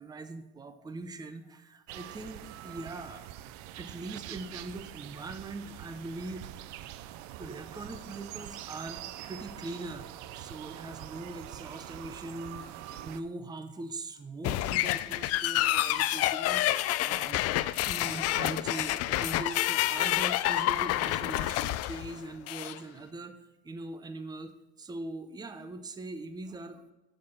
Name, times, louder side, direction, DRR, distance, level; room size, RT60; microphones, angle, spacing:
voice 1, 0.0-3.3 3.7-6.5 6.8-6.9 7.4-12.7 13.0-17.4 17.8-23.4 23.6-26.9, right 2 dB, 10° right, 9 dB, 0.7 m, -41 dB
sound 1, 1.9-13.2, right 13 dB, 60° right, 0.6 m, -44 dB
sound 2, 14.4-22.8, left 15 dB, 50° left, 0.5 m, -28 dB
7.2 x 6.6 x 5.9 m, 0.97 s
supercardioid pair, 100°, 32 cm